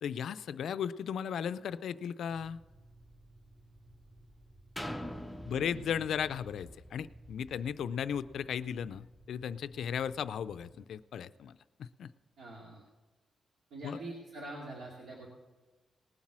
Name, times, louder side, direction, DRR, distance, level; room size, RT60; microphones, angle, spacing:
voice 1, 0.0-2.6 5.4-12.1 13.8-14.0, left 8 dB, 75° left, 14 dB, 0.4 m, -36 dB
sound 1, 2.3-10.9, right 1 dB, 35° right, 1.8 m, -59 dB
sound 2, 4.8-8.5 9.1-9.2, equal, ahead, 0.5 m, -45 dB
voice 2, 5.5-6.0 12.4-12.9 13.7-15.3, right 2 dB, 75° right, -3 dB, 2.3 m, -45 dB
18.5 x 7.4 x 6.1 m, 1.2 s
wide cardioid pair, 175°, 0 cm